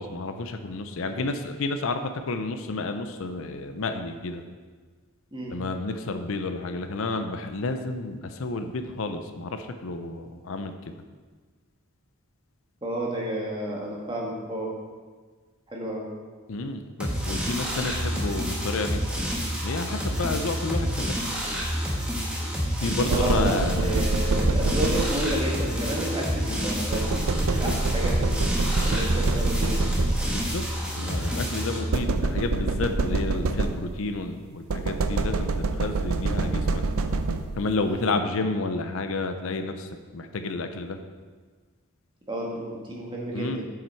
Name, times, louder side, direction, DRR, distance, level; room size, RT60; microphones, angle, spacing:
voice 1, 0.0-4.4 5.5-10.9 16.5-19.0 19.6-21.3 22.8-23.9 30.3-30.6 30.9-36.8 37.5-41.0 43.3-43.6, left 3 dB, 65° left, 7 dB, 0.5 m, -30 dB
voice 2, 12.8-14.7 15.7-16.1 23.1-28.3 28.8-30.0 37.8-38.0 42.3-43.7, right 1 dB, 20° right, -2 dB, 1.4 m, -31 dB
sound 1, 17.0-31.8, equal, 5° right, 1.2 m, -29 dB
sound 2, 23.1-25.6 26.9-30.5 31.9-34.1 34.7-37.8, right 3 dB, 75° right, 0.5 m, -26 dB
7.3 x 6.0 x 4.5 m, 1.5 s
head